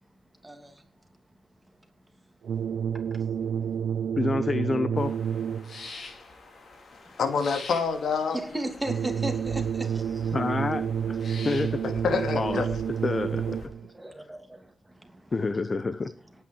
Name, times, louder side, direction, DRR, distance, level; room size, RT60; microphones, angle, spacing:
voice 1, 0.4-0.8 3.1-3.2 7.9-10.3 13.9-15.3, right 1 dB, 10° right, 2.9 m, -36 dB
sound 1, 2.4-5.9 8.8-13.9, right 8 dB, 80° right, 0.6 m, -29 dB
voice 2, 4.2-5.1 10.3-11.2 11.4-11.8 12.3-12.6 13.0-13.6 15.3-16.1, left 3 dB, 35° left, 1.0 m, -28 dB
sound 2, 5.0-13.7, left 3 dB, 55° left, 4.2 m, -45 dB
voice 3, 7.2-8.4 11.8-12.7, left 5 dB, 80° left, 2.4 m, -27 dB
18.0 x 9.4 x 4.7 m
wide cardioid pair, 120°, 0 cm